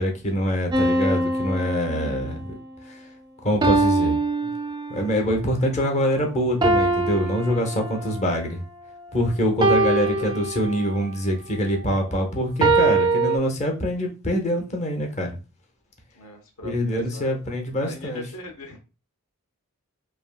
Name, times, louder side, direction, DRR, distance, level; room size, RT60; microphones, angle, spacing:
voice 1, 0.0-2.6 2.9-3.0 3.4-4.2 4.9-8.6 9.1-15.4 16.6-18.2, equal, 30° left, 3 dB, 0.7 m, -24 dB
sound 1, 0.7-2.5 3.6-5.2 6.6-8.3 9.6-11.1 12.6-13.4, right 2 dB, 20° right, 0.3 m, -23 dB
voice 2, 8.0-8.4 9.9-10.4 16.1-17.4 17.8-18.8, left 1 dB, 70° left, 3 dB, 0.8 m, -41 dB
3.4 x 2.6 x 2.2 m, 0.31 s
head